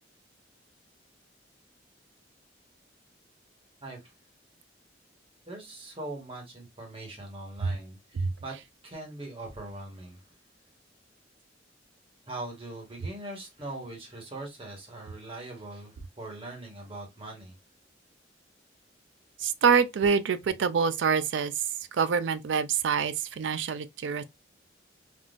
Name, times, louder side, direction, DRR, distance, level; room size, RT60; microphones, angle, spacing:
voice 1, 3.8-4.1 5.5-8.6 8.8-10.2 12.3-17.5, right 2 dB, 30° right, 1.3 m, -41 dB
voice 2, 19.4-21.6 21.9-24.2, right 6 dB, 75° right, 0.4 m, -26 dB
3.6 x 2.4 x 2.4 m
head